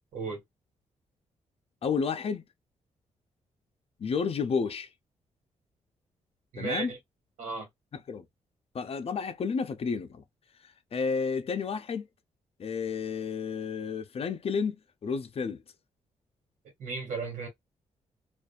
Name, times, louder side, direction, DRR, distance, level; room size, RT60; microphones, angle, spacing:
voice 1, 1.8-2.4 4.0-4.9 6.6-6.9 7.9-8.2 8.7-10.2 10.9-12.1 12.6-15.6, left 5 dB, 50° left, 0.6 m, -31 dB
voice 2, 6.5-7.0 7.4-7.7 16.8-17.5, right 4 dB, 85° right, 1.7 m, -34 dB
2.6 x 2.4 x 2.3 m
cardioid pair, 80°, 13 cm